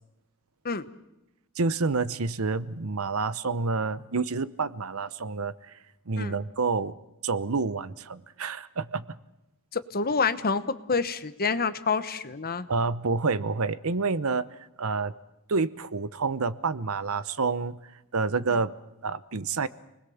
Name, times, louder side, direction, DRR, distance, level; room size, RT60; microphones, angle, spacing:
voice 1, 1.6-5.7 6.1-6.9 7.2-9.2 12.7-14.5 14.8-15.1 15.5-17.8 18.1-18.7 19.0-19.7, right 4 dB, 70° right, 16 dB, 0.9 m, -28 dB
voice 2, 9.7-12.7, left 4 dB, 45° left, 12 dB, 1.1 m, -27 dB
29.0 x 20.5 x 7.2 m, 0.94 s
head